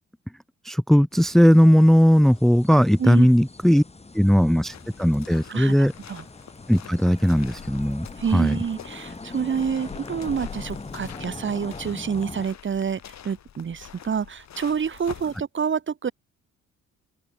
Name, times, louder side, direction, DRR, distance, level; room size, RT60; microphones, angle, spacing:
voice 1, 0.6-3.8 4.1-5.9 6.7-8.1 8.3-8.6, equal, ahead, 1.0 m, -18 dB
sound 1, 1.1-12.5, left 3 dB, 20° left, 7.1 m, -42 dB
sound 2, 4.7-15.4, left 9 dB, 65° left, 6.7 m, -44 dB
voice 2, 5.5-6.2 8.2-16.1, right 7 dB, 40° right, 1.8 m, -28 dB
open air
cardioid pair, 90°, 30 cm